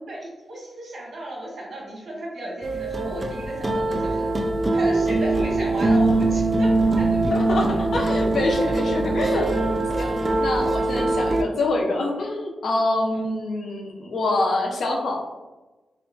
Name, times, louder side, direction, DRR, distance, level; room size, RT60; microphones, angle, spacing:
voice 1, 0.1-4.3 4.7-6.7 7.0-7.8 10.6-10.7 13.1-13.2, right 1 dB, 70° right, -3 dB, 0.9 m, -34 dB
sound 1, 2.6-11.4, right 2 dB, 30° right, 0.3 m, -22 dB
voice 2, 7.3-9.5 10.0-10.1 10.4-15.2, left 2 dB, 75° left, 0 dB, 0.5 m, -25 dB
2.8 x 2.1 x 2.6 m, 1.1 s
cardioid pair, 80°, 0 cm